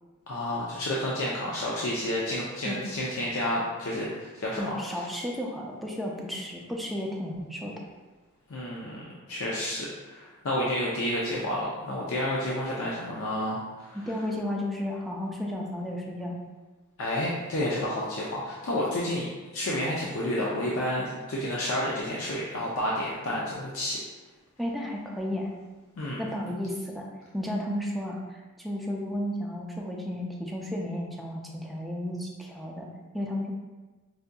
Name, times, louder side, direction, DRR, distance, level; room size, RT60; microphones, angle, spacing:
voice 1, 0.3-4.8 8.5-9.0 9.3-14.0 17.0-19.3 19.5-24.0 26.0-26.2, left 1 dB, 70° left, -5 dB, 0.5 m, -30 dB
voice 2, 4.6-7.7 13.9-16.3 24.6-25.5 26.2-27.1 27.3-28.2 28.6-32.9 33.1-33.5, left 1 dB, ahead, -2 dB, 0.4 m, -33 dB
4.7 x 2.6 x 2.2 m, 1.2 s
head